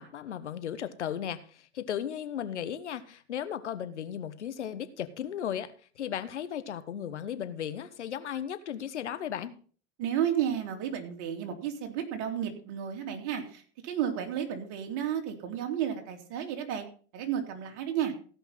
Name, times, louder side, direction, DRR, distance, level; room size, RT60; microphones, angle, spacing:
voice 1, 0.0-1.4 1.7-5.7 6.0-9.5, left 9 dB, 90° left, 12 dB, 1.2 m, -35 dB
voice 2, 10.0-16.8 17.1-18.1, right 9 dB, 55° right, 4 dB, 3.0 m, -32 dB
16.0 x 5.7 x 5.9 m, 0.42 s
hypercardioid pair, 100°, 34 cm